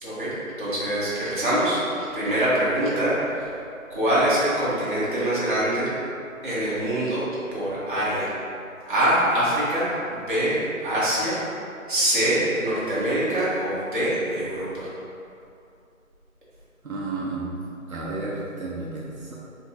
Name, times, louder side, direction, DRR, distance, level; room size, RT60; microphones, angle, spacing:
voice 1, 0.0-0.3 0.6-1.8 2.1-3.5 3.9-5.9 6.4-7.2 7.5-8.3 8.9-11.4 11.9-14.9, right 1 dB, 35° right, -10 dB, 1.3 m, -24 dB
voice 2, 16.8-17.5 17.9-19.4, right 3 dB, 80° right, -5 dB, 0.9 m, -32 dB
3.5 x 2.8 x 4.3 m, 2.6 s
figure-of-eight pair, 160°, 42 cm